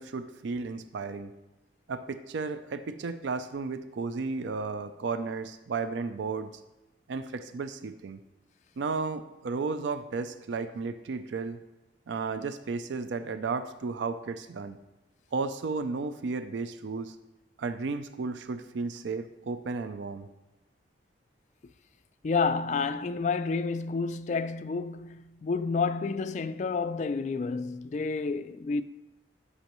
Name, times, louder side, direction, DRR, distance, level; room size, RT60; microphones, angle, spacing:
voice 1, 0.0-1.3 1.9-6.5 7.1-8.2 8.8-11.6 12.1-14.8 15.3-17.2 17.6-20.3, right 4 dB, 85° right, 0.4 m, -33 dB
voice 2, 22.2-28.8, left 4 dB, 40° left, 0.3 m, -30 dB
13.0 x 5.5 x 3.0 m
head